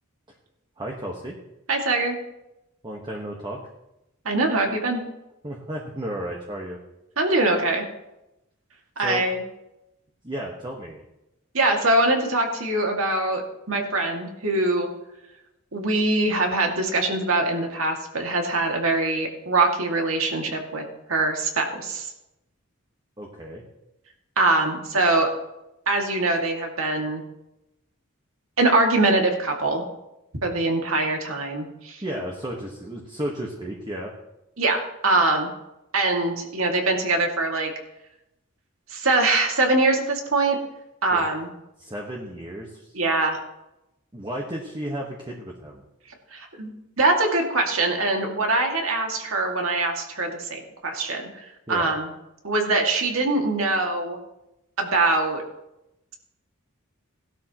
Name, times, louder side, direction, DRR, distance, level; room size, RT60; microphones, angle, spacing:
voice 1, 0.8-1.4 2.8-3.6 5.4-6.8 9.0-9.3 10.2-11.0 23.2-23.6 32.0-34.1 41.1-41.3 41.8-43.0 44.1-45.8 51.7-51.9, right 1 dB, 20° right, -1 dB, 1.4 m, -33 dB
voice 2, 1.7-2.2 4.2-5.0 7.2-7.8 9.0-9.4 11.5-13.4 13.7-14.9 15.7-20.8 21.1-22.1 24.4-25.3 25.9-27.2 28.6-29.8 30.4-32.0 34.6-35.5 35.9-37.7 38.9-40.6 41.0-41.5 42.9-43.4 46.3-46.7 47.0-52.1 52.4-54.2 54.8-55.4, right 2 dB, 80° right, 2 dB, 2.2 m, -23 dB
17.5 x 12.0 x 3.0 m, 0.91 s
head